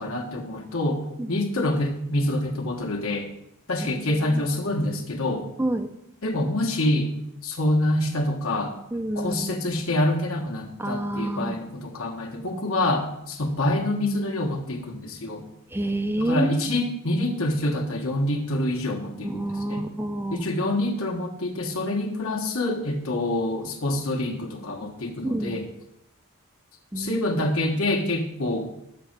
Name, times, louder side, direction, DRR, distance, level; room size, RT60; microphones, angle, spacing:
voice 1, 0.0-1.0 1.3-3.3 3.7-5.5 6.2-7.1 7.4-8.8 9.1-15.4 16.2-19.9 20.3-25.7 27.0-28.7, left 1 dB, 70° left, 1 dB, 1.4 m, -26 dB
voice 2, 5.6-5.9 8.9-9.6 10.8-11.6 15.7-16.7 19.2-20.5 25.2-25.6 26.9-27.2, right 1 dB, 10° right, 7 dB, 0.4 m, -28 dB
6.7 x 6.5 x 7.2 m, 0.79 s
head